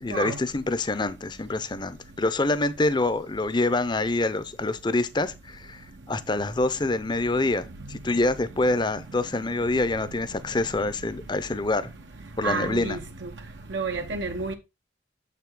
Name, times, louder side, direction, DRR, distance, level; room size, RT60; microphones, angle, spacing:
voice 1, 0.0-5.8 6.1-11.9 12.4-13.0, left 2 dB, 25° left, 0.6 m, -26 dB
voice 2, 12.4-13.3 13.7-14.5, right 4 dB, 75° right, 0.8 m, -30 dB
7.2 x 5.9 x 3.7 m
head